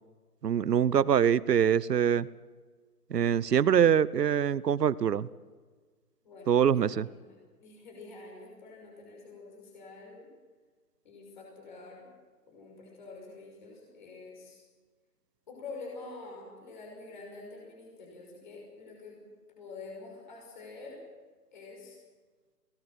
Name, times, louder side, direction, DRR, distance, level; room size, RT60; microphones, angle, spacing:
voice 1, 0.4-2.3 3.1-5.3 6.5-7.1, right 8 dB, 85° right, 20 dB, 1.0 m, -24 dB
voice 2, 6.2-10.3 11.0-12.1 12.5-14.6 15.5-19.2 19.6-21.0 21.5-22.0, left 3 dB, 30° left, -1 dB, 5.8 m, -47 dB
21.5 x 19.0 x 7.7 m, 1.4 s
hypercardioid pair, 175°, 47 cm